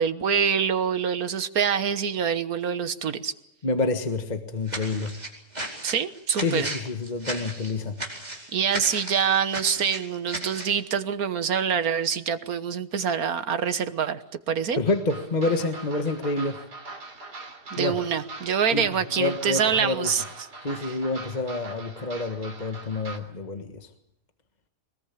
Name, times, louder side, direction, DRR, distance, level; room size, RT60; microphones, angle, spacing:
voice 1, 0.0-3.3 5.8-6.7 8.5-14.8 17.7-20.2 20.9-21.0, right 7 dB, 65° right, 11 dB, 1.6 m, -25 dB
voice 2, 3.6-5.1 6.4-8.0 14.8-16.6 17.8-18.0 18.7-18.9 19.2-20.1 20.6-23.9, left 3 dB, 25° left, 6 dB, 1.5 m, -28 dB
sound 1, 4.7-10.8, right 1 dB, 25° right, 4.7 m, -35 dB
sound 2, 14.9-23.2, right 3 dB, 80° right, 3.7 m, -42 dB
23.0 x 20.5 x 8.5 m, 0.86 s
omnidirectional pair, 1.7 m